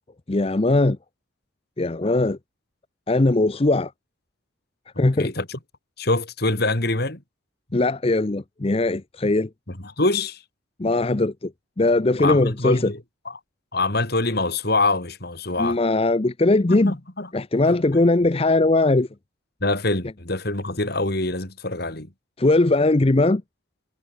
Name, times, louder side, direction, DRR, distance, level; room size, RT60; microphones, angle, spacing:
voice 1, 0.3-1.0 1.8-2.4 3.1-3.9 5.0-5.3 7.7-9.5 10.8-11.5 11.8-12.9 15.6-17.0 17.3-19.1 22.4-23.4, left 2 dB, 30° left, 0.6 m, -20 dB
voice 2, 4.9-5.6 6.0-7.2 9.7-10.4 12.2-13.0 13.2-13.3 13.7-15.8 16.7-17.3 17.6-18.0 19.6-22.1, left 2 dB, 50° left, 3.3 m, -25 dB
head